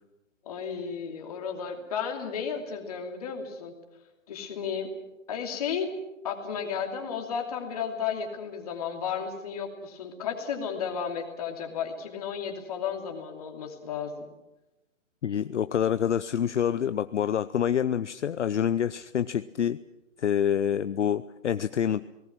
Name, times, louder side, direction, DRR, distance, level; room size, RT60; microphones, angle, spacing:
voice 1, 0.5-3.8 4.3-4.9 5.3-5.9 6.2-14.3, left 7 dB, 30° left, 2 dB, 2.8 m, -33 dB
voice 2, 15.2-19.8 20.2-22.1, left 9 dB, 60° left, 13 dB, 0.7 m, -27 dB
29.0 x 19.0 x 6.1 m, 0.98 s
hypercardioid pair, 170°, 39 cm